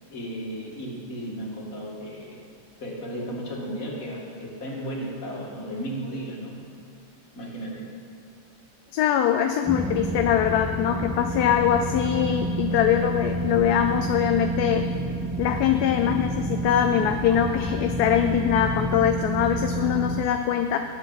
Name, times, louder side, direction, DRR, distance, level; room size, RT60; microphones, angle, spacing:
voice 1, 0.1-2.4 2.8-6.5 7.4-7.8, equal, 55° left, -3 dB, 2.5 m, -34 dB
voice 2, 8.9-14.8 15.4-20.8, left 9 dB, 80° left, 6 dB, 1.2 m, -23 dB
sound 1, 9.6-20.2, right 1 dB, ahead, 0.4 m, -29 dB
20.0 x 7.7 x 4.1 m, 2.8 s
omnidirectional pair, 1.7 m